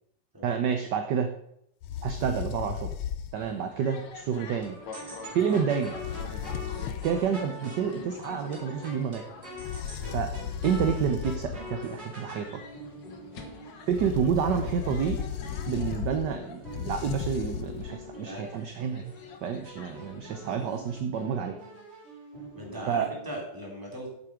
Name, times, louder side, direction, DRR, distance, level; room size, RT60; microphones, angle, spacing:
voice 1, 0.4-1.3 2.0-2.9 3.3-4.8 5.3-5.9 7.0-9.2 10.1-10.3 10.6-12.6 13.9-15.2 15.7-19.1 19.4-21.6 22.9-23.1, right 7 dB, 65° right, 7 dB, 1.2 m, -29 dB
sound 1, 1.8-3.5 5.9-7.3 9.6-11.8 13.9-18.1, left 9 dB, 85° left, 1.6 m, -35 dB
sound 2, 3.3-21.0, left 5 dB, 60° left, 1.7 m, -48 dB
sound 3, 4.4-13.9 14.5-18.6 19.0-19.4 19.6-23.3, equal, 30° right, 2.7 m, -43 dB
voice 2, 18.2-18.5 18.8-18.9 22.5-24.1, equal, 10° right, -3 dB, 2.9 m, -39 dB
8.5 x 7.7 x 5.0 m, 0.74 s
omnidirectional pair, 2.4 m